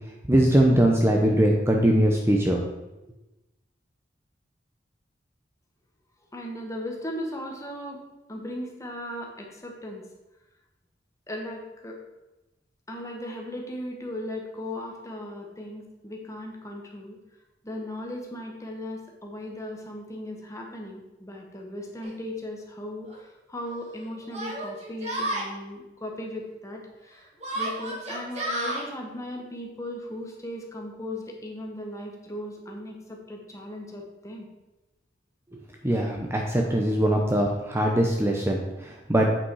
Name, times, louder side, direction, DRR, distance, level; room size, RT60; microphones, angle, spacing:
voice 1, 0.3-2.6 35.5-39.3, right 1 dB, 15° right, 0 dB, 0.7 m, -22 dB
voice 2, 6.3-10.0 11.3-12.0 12.9-17.2 17.6-34.5, left 1 dB, 15° left, 1 dB, 1.3 m, -37 dB
Yell, 22.0-22.1 23.1-23.2 24.3-25.5 27.4-28.8, right 1 dB, 35° right, 2.0 m, -31 dB
8.3 x 5.8 x 4.7 m, 1.0 s
head